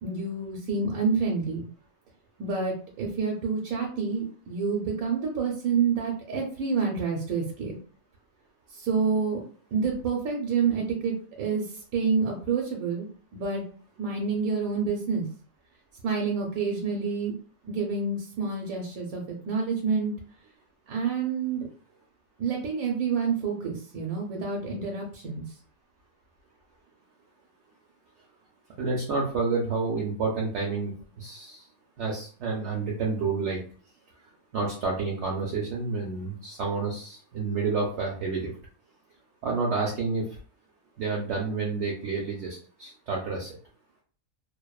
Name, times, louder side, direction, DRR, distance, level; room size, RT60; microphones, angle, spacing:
voice 1, 0.0-1.7 2.4-7.8 8.7-9.4 9.7-13.1 13.3-13.6 14.0-15.3 16.0-17.3 17.6-20.1 20.9-21.7 22.4-25.4, right 5 dB, 85° right, 0 dB, 1.0 m, -28 dB
voice 2, 28.8-31.6 32.0-33.6 34.5-38.5 39.4-40.2 41.0-43.5, right 4 dB, 65° right, -1 dB, 0.8 m, -29 dB
2.6 x 2.1 x 2.2 m, 0.43 s
omnidirectional pair, 1.4 m